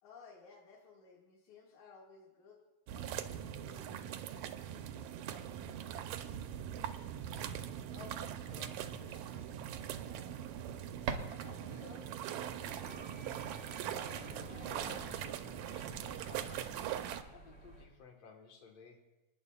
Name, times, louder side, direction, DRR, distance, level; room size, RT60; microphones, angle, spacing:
voice 1, 0.0-2.6 2.9-6.1 11.4-12.1 12.4-13.1, left 4 dB, 80° left, -1 dB, 3.2 m, -58 dB
sound 1, 2.9-17.2, right 10 dB, 85° right, 2.0 m, -42 dB
voice 2, 7.9-9.6 13.7-19.1, left 4 dB, 65° left, 3 dB, 2.4 m, -56 dB
sound 2, 8.2-13.7, right 6 dB, 65° right, 1.5 m, -47 dB
sound 3, 12.7-17.8, right 1 dB, 25° left, 3.4 m, -52 dB
26.5 x 10.0 x 2.3 m, 1.1 s
omnidirectional pair, 3.3 m